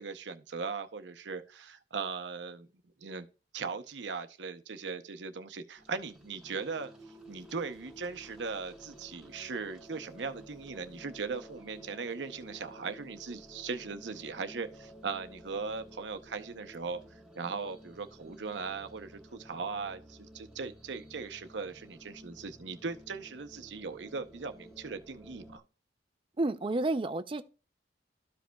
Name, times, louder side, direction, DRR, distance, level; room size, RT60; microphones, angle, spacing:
voice 1, 0.0-2.7 3.0-3.3 3.5-6.9 7.3-25.6, right 4 dB, 80° right, 0.7 m, -39 dB
sound 1, 5.8-25.6, equal, 5° right, 1.3 m, -53 dB
voice 2, 26.4-27.4, right 2 dB, 30° right, 0.5 m, -30 dB
13.5 x 5.1 x 2.3 m
head